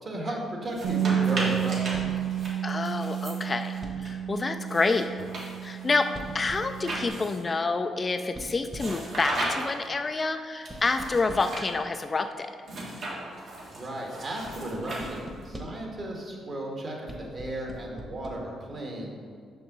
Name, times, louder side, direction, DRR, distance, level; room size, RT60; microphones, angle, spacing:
voice 1, 0.0-2.2 13.7-19.1, right 1 dB, 45° right, -1 dB, 1.5 m, -35 dB
sound 1, 0.7-4.1 4.7-7.6 8.7-9.9 10.7-11.7 12.6-15.5, right 1 dB, 65° right, 1.7 m, -37 dB
Bass guitar, 0.8-7.1, right 9 dB, 90° right, 0.7 m, -31 dB
sound 2, 1.9-2.3 3.8-4.2 6.1-6.8 8.3-9.1 10.7-11.7 14.4-15.9 17.1-18.3, right 1 dB, 15° right, 1.1 m, -42 dB
voice 2, 2.6-5.1 5.6-6.1 6.3-12.5, left 3 dB, 30° left, 7 dB, 0.3 m, -28 dB
5.9 x 5.4 x 3.9 m, 2.1 s
cardioid pair, 80°, 0 cm